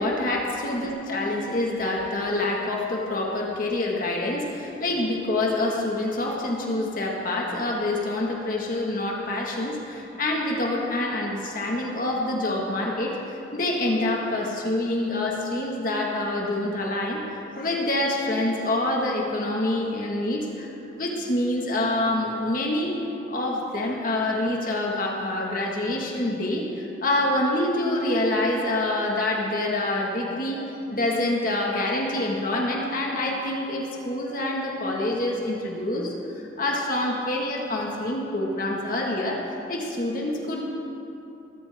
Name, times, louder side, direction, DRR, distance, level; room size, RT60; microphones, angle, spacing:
voice 1, 0.0-23.0 23.3-39.4 39.7-40.6, left 1 dB, 50° left, -2 dB, 1.8 m, -26 dB
21.0 x 14.5 x 3.6 m, 2.9 s
head